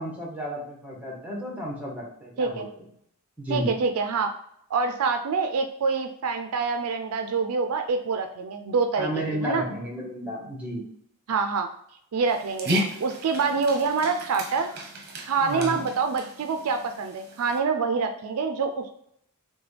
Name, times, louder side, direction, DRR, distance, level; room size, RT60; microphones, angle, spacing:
voice 1, 0.0-2.8 3.4-3.7 9.0-10.8 15.4-15.9, equal, 5° right, -2 dB, 1.1 m, -32 dB
voice 2, 3.5-4.3 4.7-9.7 11.3-11.7 12.1-14.7 15.3-18.9, right 4 dB, 70° right, 6 dB, 0.4 m, -26 dB
Dog, 12.3-17.6, equal, 45° right, 0.8 m, -34 dB
5.9 x 2.2 x 3.2 m, 0.72 s
head